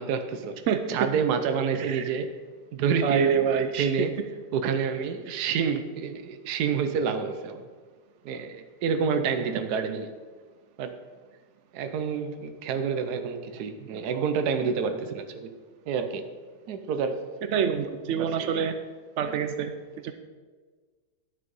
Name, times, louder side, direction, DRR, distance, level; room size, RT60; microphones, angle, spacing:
voice 1, 0.0-0.6 0.9-2.3 2.7-3.4 3.8-4.2 4.5-7.7 8.2-10.1 10.8-11.0 11.7-15.5 15.9-16.2 16.7-17.2 18.2-18.7 19.2-19.4, right 6 dB, 70° right, 8 dB, 1.2 m, -28 dB
voice 2, 0.7-1.1 1.9-2.0 3.0-3.9 17.5-18.7 19.2-19.7, right 7 dB, 90° right, 9 dB, 0.6 m, -26 dB
10.5 x 6.6 x 5.4 m, 1.5 s
omnidirectional pair, 1.9 m